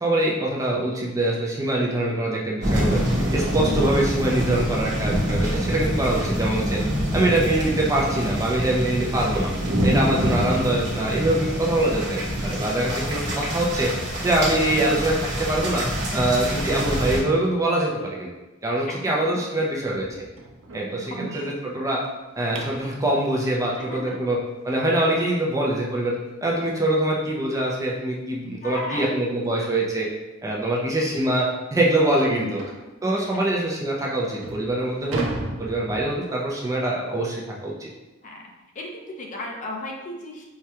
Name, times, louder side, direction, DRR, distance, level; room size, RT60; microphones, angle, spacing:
voice 1, 0.0-6.8 7.1-9.5 9.8-13.9 14.2-15.8 16.1-18.3 18.6-20.3 20.7-22.0 22.4-24.4 24.6-30.1 30.4-32.6 33.0-35.2 35.6-37.9, right 1 dB, 15° right, -3 dB, 0.5 m, -24 dB
sound 1, 2.6-17.2, equal, 60° right, 1.1 m, -26 dB
voice 2, 3.6-3.9 18.9-19.1 19.6-19.7 21.1-21.5 23.8-24.2 28.6-29.1 30.6-30.7 31.4-31.5 32.3-32.5 33.1-33.3 38.2-40.4, left 1 dB, 40° left, 0 dB, 0.6 m, -35 dB
sound 2, 19.9-23.0 25.8-25.9 26.4-26.6 26.9-27.0 27.5-27.6 28.7-28.8 29.2-29.4 30.0-30.1 30.5-30.6 31.1-31.2 32.6-32.9 33.6-33.7 34.2-36.5, right 2 dB, 85° right, 0.5 m, -36 dB
4.7 x 2.2 x 2.8 m, 1.1 s
head